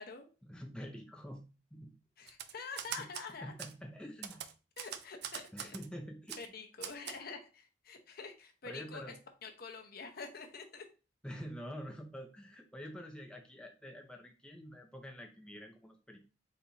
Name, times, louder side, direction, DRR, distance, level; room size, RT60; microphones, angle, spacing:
voice 1, 0.4-1.4 1.7-1.9 3.0-3.1 3.4-4.4 5.5-6.4 8.6-9.2 11.2-16.2, equal, 5° left, 2 dB, 0.5 m, -47 dB
voice 2, 2.2-3.5 4.8-5.7 6.4-9.1 9.4-10.8, left 4 dB, 55° left, 4 dB, 0.8 m, -46 dB
Typewriter, 2.3-3.3 3.6-3.7 4.2-5.9 6.3-6.5 6.8-7.2, right 9 dB, 60° right, 0.4 m, -42 dB
4.2 x 4.1 x 2.7 m, 0.33 s
head